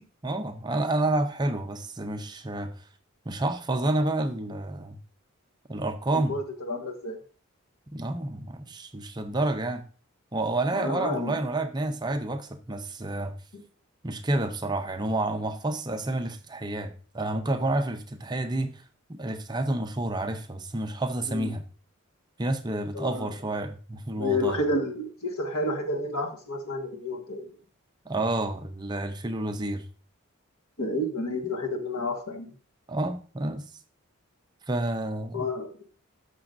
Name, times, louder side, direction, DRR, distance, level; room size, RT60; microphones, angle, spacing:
voice 1, 0.2-2.7 3.3-5.0 5.7-6.3 7.9-9.8 10.3-13.3 14.0-18.7 19.1-21.6 22.4-24.6 28.1-29.8 32.9-33.6 34.7-35.5, right 2 dB, 20° right, 7 dB, 0.6 m, -29 dB
voice 2, 6.1-7.2 10.7-11.4 21.3-21.5 22.9-23.3 24.2-27.4 30.8-32.5 35.3-35.7, left 1 dB, 75° left, 4 dB, 1.6 m, -30 dB
13.0 x 6.0 x 2.6 m, 0.40 s
head